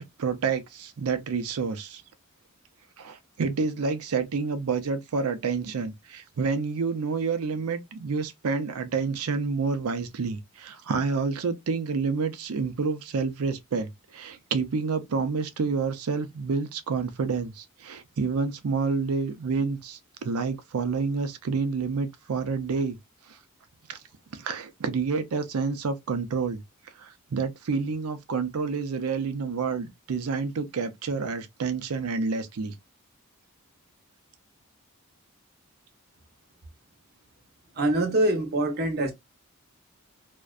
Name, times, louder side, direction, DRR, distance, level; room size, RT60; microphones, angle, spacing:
voice 1, 0.0-2.0 3.0-23.0 23.3-23.4 23.9-24.0 24.3-26.6 27.0-32.8, right 4 dB, 75° right, 0.5 m, -29 dB
voice 2, 37.8-39.1, right 1 dB, 45° right, 0.7 m, -24 dB
2.5 x 2.1 x 2.3 m
head